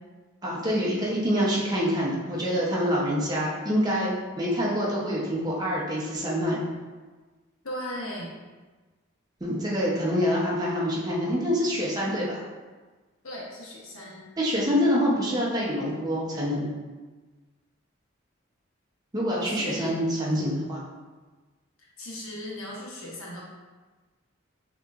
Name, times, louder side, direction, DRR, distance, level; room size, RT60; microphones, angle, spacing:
voice 1, 0.4-6.6 9.4-12.4 14.4-16.7 19.1-20.8, equal, 20° right, -5 dB, 0.8 m, -26 dB
voice 2, 7.6-8.3 13.2-14.3 19.4-20.0 21.8-23.4, left 1 dB, 90° left, -4 dB, 1.1 m, -37 dB
6.2 x 2.9 x 2.5 m, 1.3 s
head